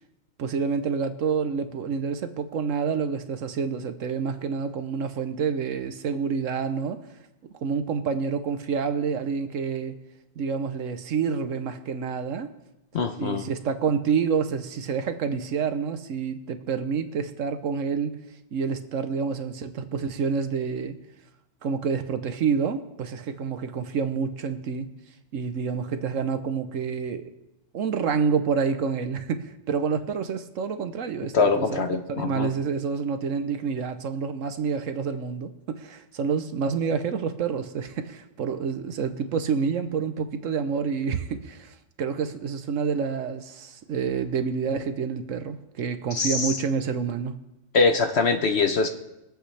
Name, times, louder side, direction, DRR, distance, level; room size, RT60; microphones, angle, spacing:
voice 1, 0.4-7.0 7.6-9.9 10.4-12.5 13.2-18.2 18.5-21.0 21.6-24.9 25.3-27.3 27.7-47.3, right 6 dB, 65° right, 9 dB, 1.1 m, -28 dB
voice 2, 12.9-13.4 31.3-32.5 46.1-46.6 47.7-48.9, left 4 dB, 55° left, 7 dB, 0.9 m, -23 dB
22.5 x 8.1 x 3.3 m, 0.91 s
omnidirectional pair, 1.5 m